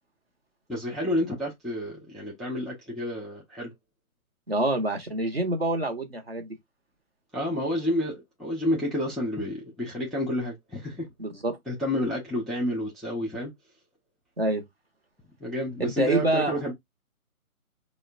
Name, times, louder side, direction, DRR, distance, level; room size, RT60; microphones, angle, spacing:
voice 1, 0.7-3.7 7.3-11.1 11.7-13.5 15.4-16.7, left 1 dB, ahead, 0.4 m, -30 dB
voice 2, 4.5-6.5 11.2-11.6 14.4-14.6 15.8-16.5, right 2 dB, 45° right, 0.7 m, -26 dB
4.5 x 2.1 x 2.4 m
hypercardioid pair, 175°, 44 cm